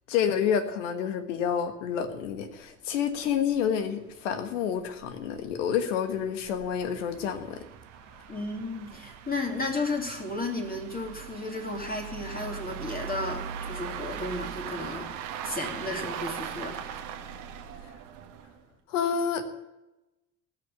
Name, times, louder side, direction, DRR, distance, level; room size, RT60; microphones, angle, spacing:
voice 1, 0.1-7.6 18.9-19.5, left 8 dB, 75° left, 9 dB, 1.5 m, -29 dB
sound 1, 2.2-2.3 2.6-2.7 3.1-3.2 3.5-3.6 4.3-18.7, right 8 dB, 75° right, 1.4 m, -40 dB
voice 2, 8.3-15.1 15.4-16.9, left 2 dB, 25° left, 1 dB, 2.9 m, -33 dB
17.5 x 6.6 x 8.0 m, 0.97 s
figure-of-eight pair, 50°, 37 cm